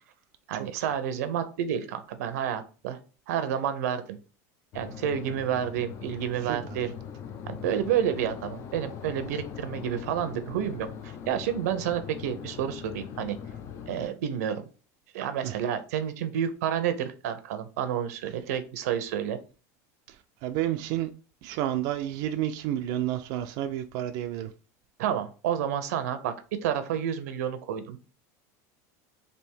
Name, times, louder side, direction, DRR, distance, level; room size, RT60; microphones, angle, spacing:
voice 1, 0.5-3.0 3.3-4.2 4.7-6.9 7.5-13.4 13.9-14.7 15.1-19.4 25.0-28.0, right 9 dB, 85° right, 0.6 m, -30 dB
sound 1, 4.7-14.1, left 7 dB, 35° left, 0.4 m, -41 dB
voice 2, 20.4-21.1 21.4-24.5, right 12 dB, 50° right, 0.3 m, -30 dB
3.4 x 2.7 x 4.4 m
supercardioid pair, 150°, 8 cm